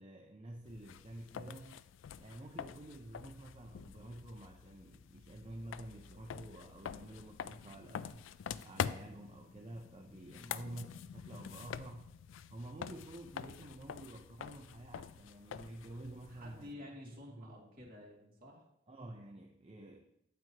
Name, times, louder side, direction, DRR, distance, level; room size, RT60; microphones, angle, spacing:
voice 1, 0.0-1.8 2.2-8.2 8.6-12.1 12.5-16.8 17.3-17.5 18.9-20.0, right 1 dB, 30° right, 3 dB, 0.5 m, -50 dB
sound 1, 0.6-16.7, left 8 dB, 90° left, 0.3 m, -46 dB
voice 2, 10.3-10.6 16.3-18.6, left 1 dB, 50° right, -3 dB, 2.3 m, -51 dB
9.2 x 8.8 x 2.8 m, 0.79 s
head